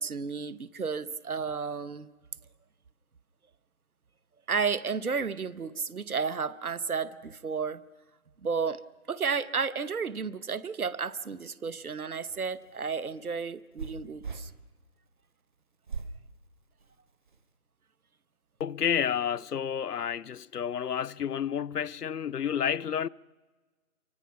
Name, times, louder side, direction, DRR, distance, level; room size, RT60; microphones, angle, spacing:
voice 1, 0.0-2.1 4.5-7.8 8.4-8.8 9.1-14.5, right 5 dB, 70° right, 1.1 m, -32 dB
sound 1, 12.5-14.5 15.9-16.2 16.8-17.4, right 5 dB, 30° right, 1.3 m, -40 dB
voice 2, 18.6-23.1, left 8 dB, 85° left, 0.7 m, -30 dB
28.5 x 24.5 x 5.8 m
figure-of-eight pair, 165°, 46 cm